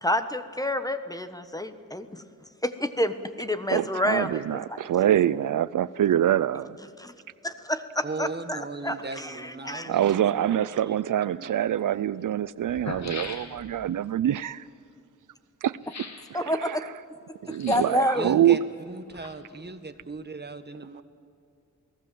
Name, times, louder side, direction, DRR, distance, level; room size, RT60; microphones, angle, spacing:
voice 1, 0.0-2.2 2.6-4.4 4.7-4.8 7.0-7.1 7.4-9.9 16.3-16.9 17.6-18.3, left 1 dB, 10° left, 1.2 m, -28 dB
voice 2, 3.7-6.8 9.9-14.7 15.6-15.8 16.3-16.9 17.4-18.6, right 11 dB, 80° right, 0.5 m, -25 dB
voice 3, 8.0-10.6 10.9-12.0 17.4-17.5 18.1-18.6 18.9-21.0, right 3 dB, 35° right, 1.6 m, -38 dB
sound 1, 11.3-11.4 12.3-12.4 12.6-13.9 15.8-16.3 17.5-18.0 18.9-19.7 20.0-20.1, left 4 dB, 60° left, 2.5 m, -40 dB
28.5 x 18.5 x 7.7 m
wide cardioid pair, 95°, 31 cm